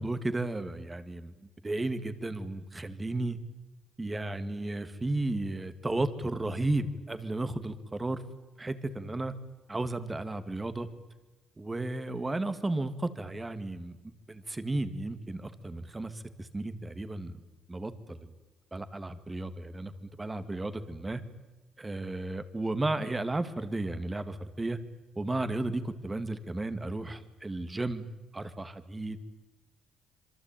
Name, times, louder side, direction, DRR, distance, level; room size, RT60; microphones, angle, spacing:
voice 1, 0.0-1.3 1.6-3.4 4.0-8.2 8.6-9.3 9.7-10.9 11.6-14.0 14.3-17.4 17.7-18.2 18.7-19.9 20.2-21.2 21.8-24.8 25.2-28.1 28.3-29.2, right 2 dB, 20° right, 11 dB, 2.3 m, -33 dB
26.5 x 23.0 x 9.2 m, 1.1 s
cardioid pair, 90°, 0 cm